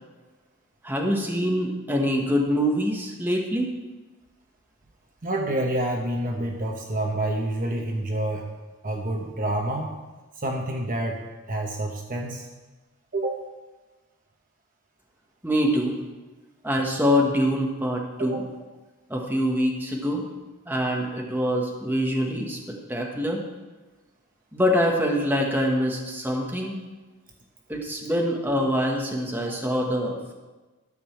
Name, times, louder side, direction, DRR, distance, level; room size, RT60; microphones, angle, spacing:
voice 1, 0.8-3.7 15.4-15.9 16.6-18.4 19.1-20.2 20.7-22.6 22.9-23.4 24.5-26.8 27.7-30.3, equal, 10° right, -1 dB, 1.5 m, -24 dB
voice 2, 5.2-8.4 8.8-9.9 10.4-11.2 11.5-12.5 13.1-13.4 18.2-18.4, right 1 dB, 40° right, 1 dB, 1.0 m, -28 dB
12.5 x 5.3 x 7.3 m, 1.2 s
head